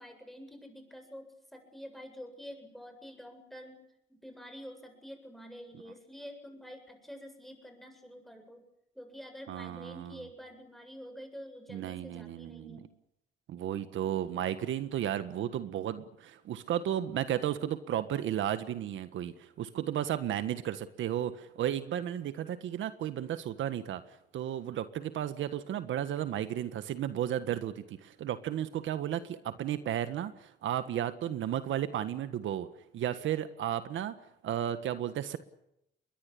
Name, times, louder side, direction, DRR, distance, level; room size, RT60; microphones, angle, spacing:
voice 1, 0.0-3.8 4.1-8.6 9.0-12.9, equal, ahead, 5 dB, 8.0 m, -48 dB
voice 2, 9.5-10.3 11.7-12.9 13.5-24.0 24.3-32.7 32.9-34.1 34.4-35.4, right 11 dB, 75° right, 11 dB, 1.5 m, -34 dB
22.5 x 21.0 x 8.5 m, 0.80 s
cardioid pair, 90°, 20 cm